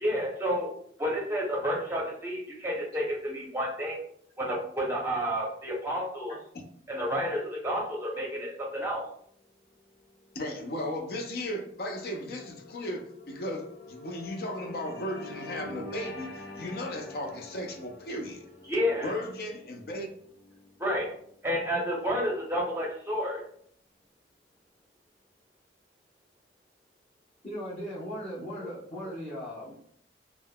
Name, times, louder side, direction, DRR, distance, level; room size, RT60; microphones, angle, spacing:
voice 1, 0.0-0.7 1.0-4.0 4.4-6.4 6.9-9.0 18.7-19.1 20.8-21.1 21.4-23.4, equal, 15° right, -2 dB, 0.6 m, -30 dB
sound 1, 9.8-22.4, left 2 dB, 70° left, 1.1 m, -47 dB
voice 2, 10.3-18.4 19.0-20.1, left 1 dB, 55° left, 4 dB, 0.5 m, -36 dB
voice 3, 27.4-29.8, equal, 35° left, -6 dB, 1.0 m, -38 dB
3.5 x 2.0 x 2.2 m, 0.64 s
head